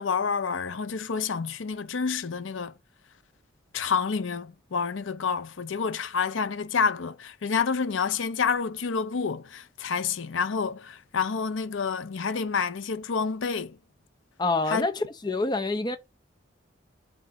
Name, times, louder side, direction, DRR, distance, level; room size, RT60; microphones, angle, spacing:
voice 1, 0.0-2.7 3.7-13.8 14.7-14.9, left 5 dB, 85° left, 0.6 m, -28 dB
voice 2, 14.4-16.0, left 3 dB, 20° left, 0.6 m, -27 dB
7.5 x 2.6 x 5.7 m
head